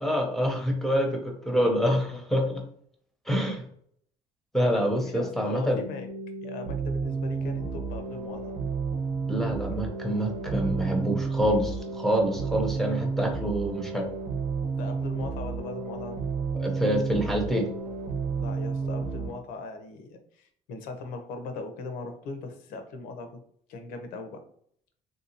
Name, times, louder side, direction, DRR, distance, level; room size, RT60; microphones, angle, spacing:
voice 1, 0.0-2.6 3.3-3.6 4.5-5.8 9.3-14.1 16.6-17.7, equal, ahead, 1 dB, 0.6 m, -26 dB
voice 2, 5.0-6.1 6.4-8.6 14.8-16.2 18.4-23.4 23.7-24.4, left 3 dB, 85° left, 6 dB, 0.7 m, -39 dB
sound 1, 5.7-19.3, right 4 dB, 80° right, 0.9 m, -31 dB
3.2 x 2.8 x 2.8 m, 0.63 s
cardioid pair, 125°, 14 cm